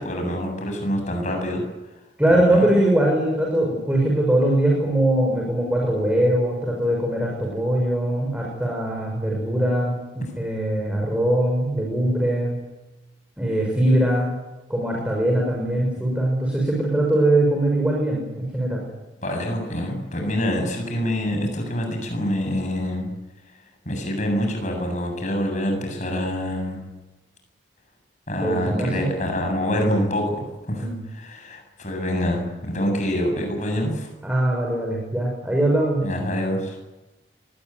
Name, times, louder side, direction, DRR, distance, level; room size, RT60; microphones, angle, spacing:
voice 1, 0.0-1.6 2.3-2.7 19.2-23.1 23.9-26.8 28.3-34.1 36.0-36.8, equal, 40° left, 3 dB, 7.9 m, -26 dB
voice 2, 2.2-10.0 10.4-12.6 13.4-14.4 14.7-18.8 28.4-29.1 30.7-31.0 34.2-36.0, right 1 dB, 5° right, -2 dB, 6.1 m, -21 dB
25.0 x 20.5 x 9.5 m, 1.1 s
head